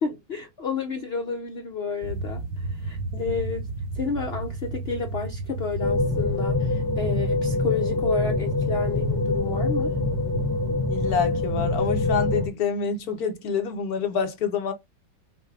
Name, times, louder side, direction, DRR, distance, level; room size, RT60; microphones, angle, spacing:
voice 1, 0.0-3.7 3.9-9.9, left 5 dB, 80° left, 0.5 m, -31 dB
sound 1, 2.0-12.4, right 2 dB, 75° right, 1.4 m, -35 dB
sound 2, 5.8-12.5, left 2 dB, 15° left, 1.1 m, -25 dB
voice 2, 10.9-14.7, left 6 dB, 60° left, 1.3 m, -27 dB
6.0 x 2.2 x 3.3 m
omnidirectional pair, 1.9 m